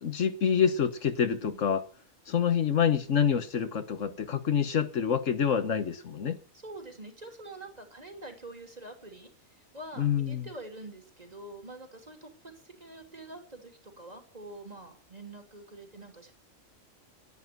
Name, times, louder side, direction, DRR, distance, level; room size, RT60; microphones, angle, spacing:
voice 1, 0.0-1.8 2.3-6.4 10.0-10.5, left 7 dB, 70° left, 1.5 m, -27 dB
voice 2, 6.6-16.3, right 2 dB, 30° right, 3.2 m, -46 dB
11.0 x 10.5 x 9.3 m
omnidirectional pair, 1.4 m